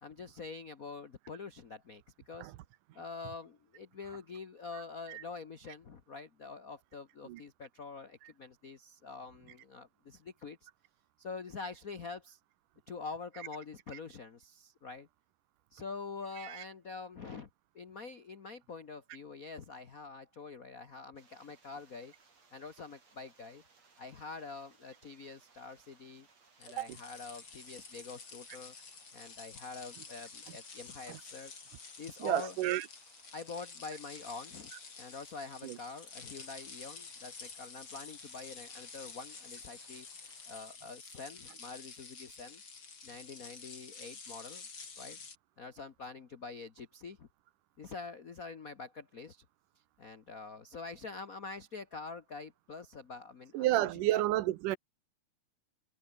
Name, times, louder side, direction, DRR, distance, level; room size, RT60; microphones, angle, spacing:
voice 1, 0.0-2.5 2.9-10.7 11.2-12.4 12.9-15.1 15.7-17.5 17.7-22.1 22.5-23.6 24.0-26.3 26.6-28.7 29.1-31.5 32.0-32.6 33.3-34.7 35.0-40.1 40.5-42.6 43.0-44.7 45.0-45.2 45.6-47.3 47.8-49.4 49.7-54.2, left 4 dB, 85° left, 0.7 m, -46 dB
sound 1, 21.2-40.8, right 4 dB, 55° right, 6.2 m, -65 dB
sound 2, 26.6-45.4, left 5 dB, 40° left, 3.8 m, -50 dB
voice 2, 32.2-32.8 35.6-35.8 53.5-54.8, right 15 dB, 90° right, 2.5 m, -31 dB
omnidirectional pair, 3.7 m